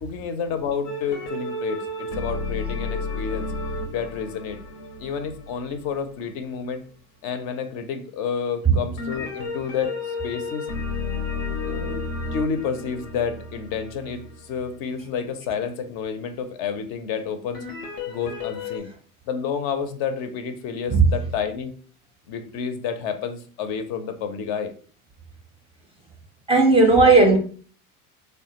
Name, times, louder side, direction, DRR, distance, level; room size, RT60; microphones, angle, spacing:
voice 1, 0.0-3.5 3.9-4.6 5.0-6.8 7.2-10.7 11.7-12.0 12.3-17.6 18.1-18.9 19.3-21.7 22.3-24.7, left 6 dB, 55° left, 0.6 m, -30 dB
sound 1, 0.8-6.5 9.0-14.9 17.5-18.8, left 3 dB, 90° left, 0.7 m, -32 dB
voice 2, 26.5-27.4, right 3 dB, 15° right, 0.4 m, -15 dB
3.1 x 2.1 x 2.9 m
hypercardioid pair, 80°, 44 cm